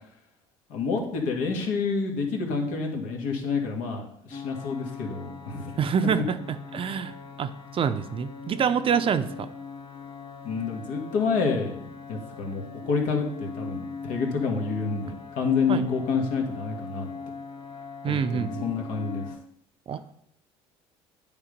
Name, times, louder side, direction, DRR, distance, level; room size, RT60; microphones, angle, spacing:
voice 1, 0.7-5.8 10.4-11.8 12.1-17.1 18.1-19.3, left 4 dB, 70° left, 1 dB, 1.8 m, -28 dB
sound 1, 4.3-19.4, left 5 dB, 35° left, 0.8 m, -41 dB
voice 2, 5.8-7.1 7.4-9.5 15.7-15.9 18.0-18.7 19.9-20.0, right 7 dB, 40° right, 11 dB, 0.6 m, -26 dB
9.0 x 3.6 x 5.2 m, 0.71 s
supercardioid pair, 80°, 14 cm